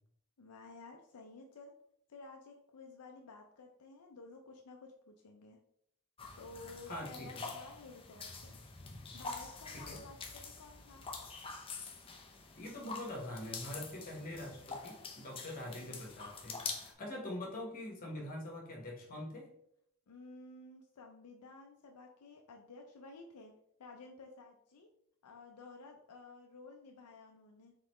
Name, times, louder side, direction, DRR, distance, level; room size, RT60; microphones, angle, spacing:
voice 1, 0.4-1.8 2.1-5.6 6.4-8.6 9.1-11.1 20.1-24.9 25.2-27.7, left 3 dB, 85° left, 2 dB, 0.5 m, -53 dB
sound 1, 6.2-16.9, left 4 dB, 25° left, 0.6 m, -46 dB
voice 2, 6.9-7.5 9.7-10.0 12.5-19.5, left 1 dB, 40° left, -1 dB, 1.4 m, -44 dB
4.0 x 3.9 x 3.1 m, 0.71 s
head